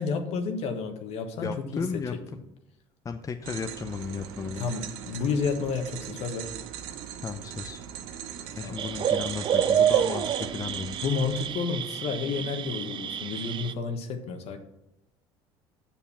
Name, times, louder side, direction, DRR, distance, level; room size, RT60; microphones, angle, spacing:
voice 1, 0.0-2.0 4.6-6.5 8.6-8.8 11.0-14.6, left 5 dB, 60° left, 6 dB, 1.4 m, -31 dB
voice 2, 1.4-2.1 3.0-4.7 7.2-7.8 8.5-11.0, left 5 dB, 25° left, 7 dB, 0.6 m, -34 dB
sound 1, 3.4-11.5, right 9 dB, 75° right, 0.8 m, -40 dB
sound 2, 8.8-13.7, right 9 dB, 40° right, 0.5 m, -28 dB
7.3 x 6.9 x 5.6 m, 0.90 s
hypercardioid pair, 70°, 12 cm